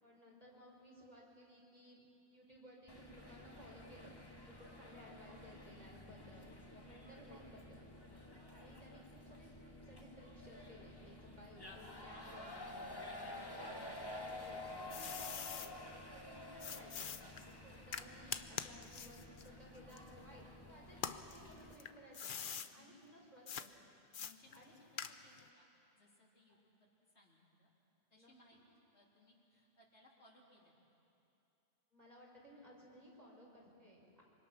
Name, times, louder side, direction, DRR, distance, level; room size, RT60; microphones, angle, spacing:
voice 1, 0.0-7.8 8.5-17.1 17.6-22.5 22.7-23.7 24.5-24.8 28.1-28.3 31.9-34.2, equal, 40° right, -3 dB, 5.0 m, -59 dB
sound 1, 2.9-21.7, left 1 dB, 20° left, 1.9 m, -51 dB
voice 2, 8.0-8.4 16.2-16.5 17.5-17.9 22.7-23.0 24.2-25.7 25.9-26.9 27.1-27.7 28.1-30.7, left 1 dB, 75° left, -4 dB, 3.8 m, -67 dB
sound 2, 14.3-15.7 16.6-20.5 20.9-22.7 23.5-23.7 24.1-25.5, left 7 dB, 55° left, 0.9 m, -45 dB
26.0 x 25.0 x 6.0 m, 2.8 s
omnidirectional pair, 1.1 m